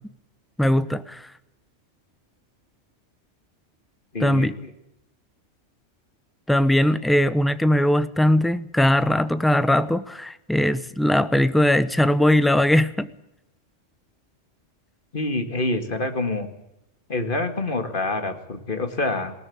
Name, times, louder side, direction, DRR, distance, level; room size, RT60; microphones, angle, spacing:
voice 1, 0.6-1.3 4.2-4.5 6.5-13.1, left 1 dB, ahead, 13 dB, 0.8 m, -20 dB
voice 2, 4.1-4.7 15.1-16.5 17.1-19.3, left 2 dB, 45° left, 7 dB, 2.4 m, -26 dB
20.5 x 18.5 x 8.7 m, 0.86 s
omnidirectional pair, 1.2 m